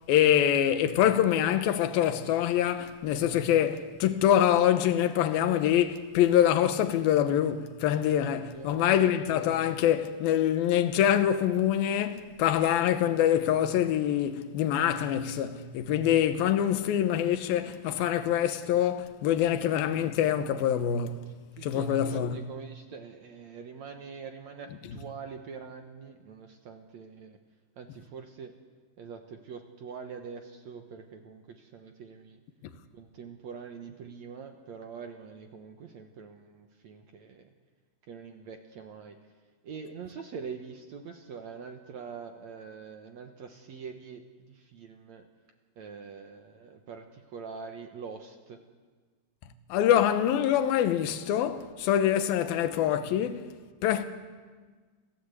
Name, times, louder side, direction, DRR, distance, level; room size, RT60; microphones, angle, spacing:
voice 1, 0.1-21.2 21.6-22.4 49.7-53.5 53.8-54.0, left 10 dB, 70° left, 2.8 m, -25 dB
voice 2, 8.4-9.1 21.5-27.4 27.8-28.5 29.0-32.4 32.9-37.5 38.1-39.2 39.6-45.2 45.8-48.6, right 6 dB, 65° right, 1.8 m, -44 dB
27.5 x 16.5 x 8.2 m
omnidirectional pair, 4.8 m